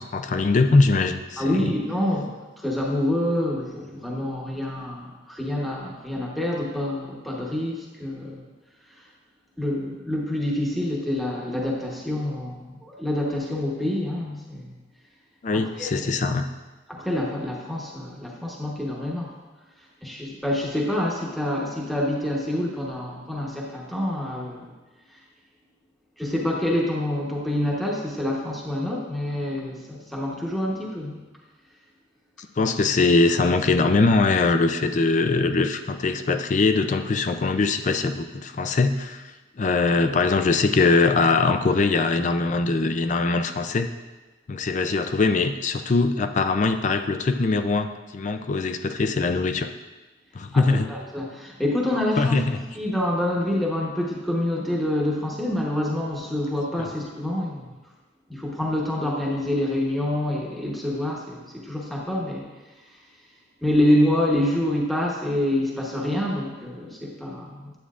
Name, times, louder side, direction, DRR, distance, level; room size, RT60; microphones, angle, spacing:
voice 1, 0.0-1.6 15.4-16.5 32.6-39.3 39.6-43.9 44.5-49.7 50.3-50.9 52.2-52.6 56.8-56.9, left 3 dB, 40° left, 8 dB, 0.4 m, -22 dB
voice 2, 1.4-8.4 9.6-14.7 15.5-16.1 16.9-19.4 20.0-24.7 25.1-25.2 26.2-31.2 50.5-52.4 52.7-57.7 58.3-62.5 63.6-67.7, left 1 dB, ahead, -4 dB, 1.0 m, -27 dB
9.4 x 8.2 x 2.5 m, 1.2 s
head